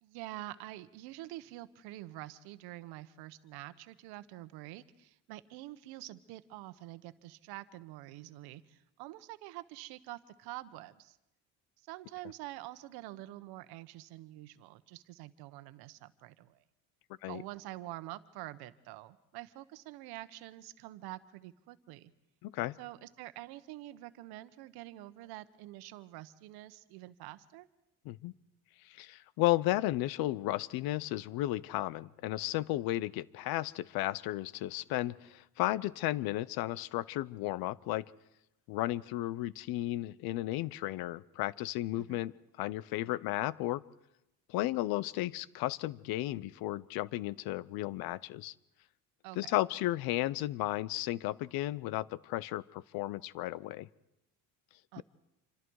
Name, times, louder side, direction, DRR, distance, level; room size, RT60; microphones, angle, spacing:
voice 1, 0.0-11.2 11.9-16.6 17.3-22.1 22.8-27.7 42.0-42.2 49.2-49.5 54.9-55.0, right 16 dB, 85° right, 13 dB, 1.2 m, -47 dB
voice 2, 22.4-22.8 28.0-28.3 28.9-38.1 38.7-42.3 42.6-43.8 44.5-48.5 49.3-53.9 55.0-55.1, left 16 dB, 75° left, 21 dB, 0.8 m, -34 dB
27.0 x 25.5 x 4.8 m, 0.90 s
cardioid pair, 135°, 37 cm